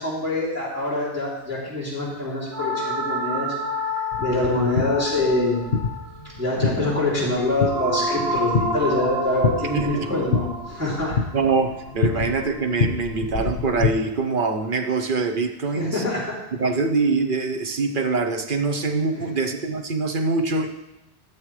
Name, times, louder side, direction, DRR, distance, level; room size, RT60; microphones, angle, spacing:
voice 1, 0.0-3.5 4.2-5.6 6.4-11.2 12.1-12.2 13.3-13.4 15.7-16.3 19.1-19.3, left 2 dB, 15° right, -9 dB, 3.1 m, -25 dB
sound 1, 2.5-12.7, equal, 70° right, 1.4 m, -30 dB
sound 2, 4.1-13.9, left 5 dB, 75° left, 1.3 m, -28 dB
voice 2, 9.7-10.1 11.3-16.0 16.5-20.7, right 4 dB, 55° right, 5 dB, 0.9 m, -24 dB
14.5 x 7.1 x 3.2 m, 0.97 s
omnidirectional pair, 1.1 m